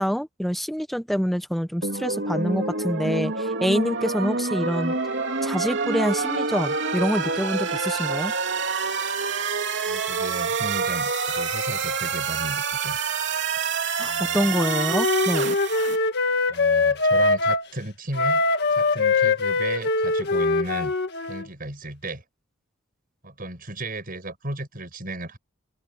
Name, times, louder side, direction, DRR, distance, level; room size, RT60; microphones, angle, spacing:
voice 1, 0.0-4.9 5.4-8.3 14.0-15.5, equal, ahead, 1.0 m, -26 dB
sound 1, 1.8-16.0, right 4 dB, 60° right, 3.5 m, -27 dB
voice 2, 9.8-13.0 14.0-14.6 16.5-18.4 18.7-20.9 21.3-22.2 23.2-25.4, right 1 dB, 45° right, 7.8 m, -35 dB
Wind instrument woodwind instrument, 14.5-17.7 18.1-21.5, left 3 dB, 55° left, 1.8 m, -22 dB
open air
head